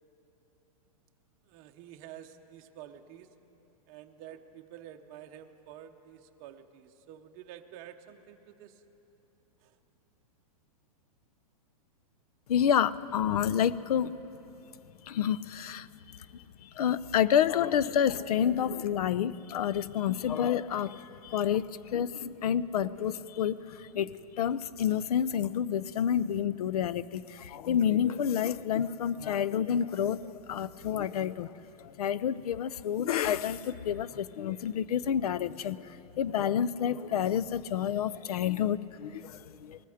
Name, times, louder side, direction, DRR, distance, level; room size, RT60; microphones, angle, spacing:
voice 1, 1.4-3.3 3.9-8.8 9.6-9.8, right 10 dB, 30° right, 5 dB, 0.7 m, -49 dB
voice 2, 12.5-14.1 15.0-15.9 16.3-39.8, left 9 dB, 80° left, 19 dB, 0.5 m, -29 dB
19.5 x 14.0 x 5.0 m, 3.0 s
supercardioid pair, 160°, 19 cm